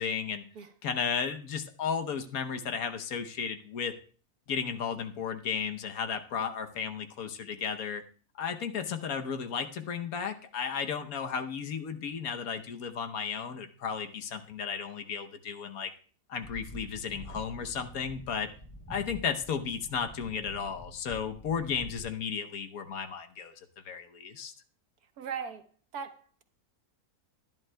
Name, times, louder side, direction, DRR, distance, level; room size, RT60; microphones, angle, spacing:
voice 1, 0.0-0.4 0.8-4.0 4.5-8.0 8.4-15.9 16.3-18.5 18.9-23.5 23.8-24.5, left 6 dB, 65° left, 1.3 m, -34 dB
sound 1, 16.4-22.1, equal, 20° left, 2.6 m, -47 dB
voice 2, 25.2-25.6 25.9-26.4, right 7 dB, 75° right, 1.5 m, -38 dB
21.5 x 11.0 x 2.2 m
omnidirectional pair, 1.7 m